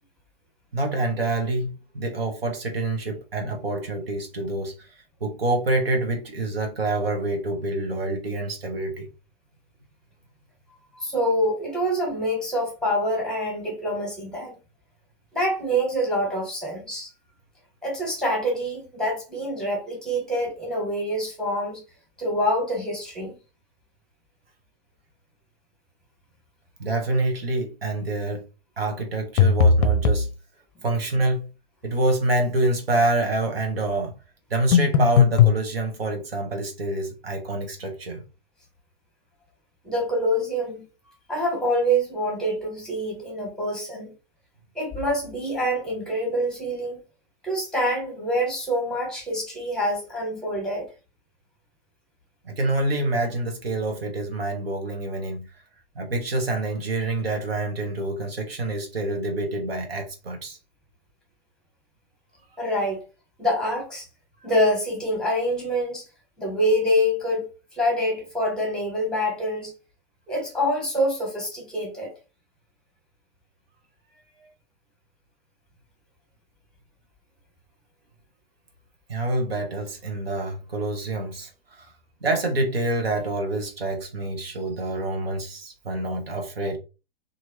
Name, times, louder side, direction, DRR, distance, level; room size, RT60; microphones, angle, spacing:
voice 1, 0.7-9.1 26.8-28.4 28.8-30.3 30.8-31.5 31.8-34.1 34.5-38.2 52.4-55.5 55.9-60.6 74.4-74.5 79.1-81.9 82.2-86.8, right 2 dB, 80° right, 1.0 m, -27 dB
voice 2, 11.0-14.6 15.3-17.1 17.8-21.8 22.2-23.3 39.8-40.8 41.3-44.1 44.7-47.0 47.4-50.9 62.6-63.0 63.4-64.0 64.4-66.0 66.4-69.7 70.3-72.1, equal, ahead, 1.4 m, -26 dB
sound 1, 29.4-30.3 34.7-35.6, left 6 dB, 40° left, 0.5 m, -17 dB
2.8 x 2.6 x 2.7 m
figure-of-eight pair, 110°, 30 cm